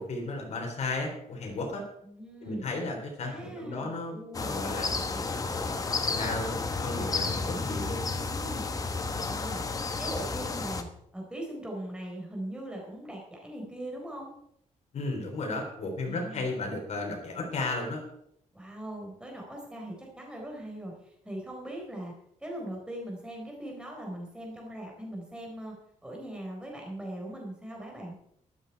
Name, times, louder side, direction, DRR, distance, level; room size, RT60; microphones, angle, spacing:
voice 1, 0.0-1.8 2.4-4.9 5.3-8.0 14.9-18.0, left 2 dB, 55° left, 2 dB, 3.5 m, -34 dB
voice 2, 2.0-2.7 3.2-4.8 5.1-5.4 8.3-8.7 9.2-9.6 10.0-10.9 11.1-14.3 16.0-16.5 18.5-22.1 22.4-25.7 26.0-28.2, right 1 dB, 5° right, -1 dB, 4.1 m, -40 dB
sound 1, 4.3-10.8, left 4 dB, 25° left, 1.1 m, -32 dB
13.0 x 12.5 x 4.6 m, 0.72 s
wide cardioid pair, 170°, 13 cm